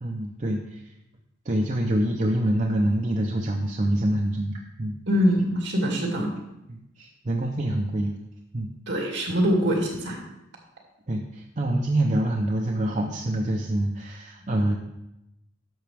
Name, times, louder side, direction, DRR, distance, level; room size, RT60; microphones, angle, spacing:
voice 1, 0.0-0.8 1.5-5.0 6.7-8.2 8.5-8.7 11.1-14.8, right 1 dB, 35° right, 0 dB, 0.6 m, -26 dB
voice 2, 5.1-6.3 8.9-10.2, equal, 65° right, -1 dB, 2.4 m, -23 dB
10.5 x 6.9 x 3.4 m, 0.90 s
head